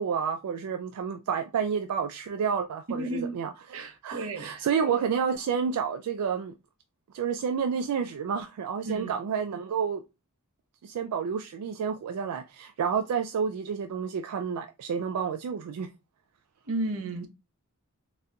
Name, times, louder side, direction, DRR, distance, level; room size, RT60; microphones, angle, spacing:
voice 1, 0.0-3.5 4.0-6.5 7.1-10.0 10.8-15.9, right 6 dB, 85° right, 0.3 m, -30 dB
voice 2, 2.9-3.3 3.7-4.6 8.8-9.1 16.6-17.3, right 2 dB, 65° right, 0.7 m, -33 dB
4.1 x 2.5 x 2.2 m
head